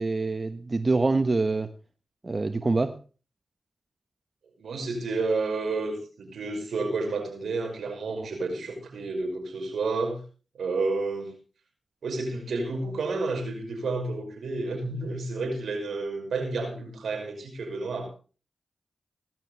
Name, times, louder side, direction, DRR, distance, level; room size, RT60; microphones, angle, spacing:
voice 1, 0.0-1.7 2.2-3.0, right 3 dB, 40° right, 10 dB, 1.2 m, -25 dB
voice 2, 4.6-10.2 10.6-11.4 12.0-18.1, right 3 dB, 85° right, 4 dB, 5.7 m, -30 dB
19.0 x 12.5 x 3.4 m, 0.36 s
cardioid pair, 45°, 0 cm